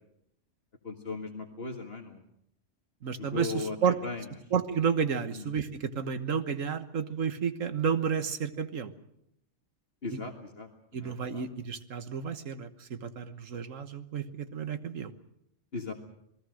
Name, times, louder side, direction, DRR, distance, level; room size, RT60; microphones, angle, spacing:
voice 1, 0.8-2.2 3.2-4.2 5.4-5.5 10.0-10.7 10.9-11.5 15.7-15.9, left 4 dB, 50° left, 3 dB, 2.0 m, -37 dB
voice 2, 3.0-4.0 4.5-8.9 10.1-10.2 10.9-15.1, right 6 dB, 80° right, 11 dB, 1.6 m, -31 dB
27.5 x 20.0 x 6.4 m, 0.74 s
omnidirectional pair, 1.3 m